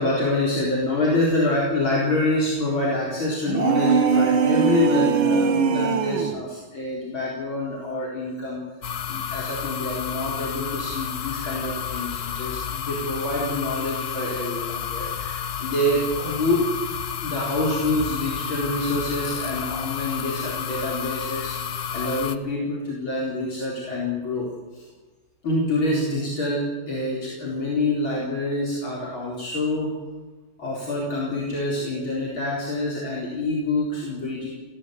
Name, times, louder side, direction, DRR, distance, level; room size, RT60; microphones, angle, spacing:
voice 1, 0.0-8.6 9.1-16.6 17.2-24.5 24.7-24.9 25.4-29.9 30.6-34.5, left 2 dB, 65° left, -4 dB, 5.0 m, -26 dB
sound 1, 3.5-6.4, right 5 dB, 70° right, 2.2 m, -20 dB
sound 2, 8.8-22.4, left 8 dB, 50° left, 1.0 m, -31 dB
22.0 x 16.5 x 8.3 m, 1.3 s
omnidirectional pair, 2.3 m